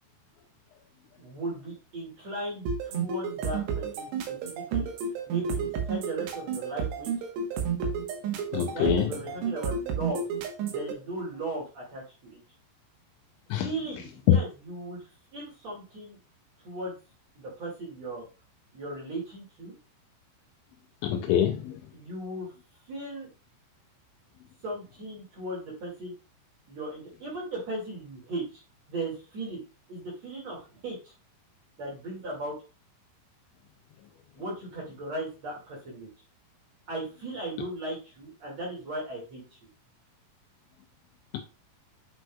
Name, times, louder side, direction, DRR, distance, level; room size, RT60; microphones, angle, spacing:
voice 1, 1.2-4.9 5.3-7.1 8.7-10.2 10.6-12.4 13.5-15.1 15.3-16.2 16.6-16.9 17.4-18.2 18.7-19.7 21.9-22.5 22.9-23.3 24.6-26.1 26.7-28.6 28.9-29.6 29.9-31.1 31.8-32.5 34.4-36.1 36.9-39.4, right 1 dB, 45° right, 2.4 m, -37 dB
sound 1, 2.7-10.9, right 6 dB, 70° right, 3.0 m, -31 dB
voice 2, 8.5-9.1 13.5-13.7 14.3-14.4 21.0-21.8 41.3-41.4, left 11 dB, 80° left, 2.8 m, -24 dB
9.7 x 6.0 x 2.3 m
omnidirectional pair, 5.8 m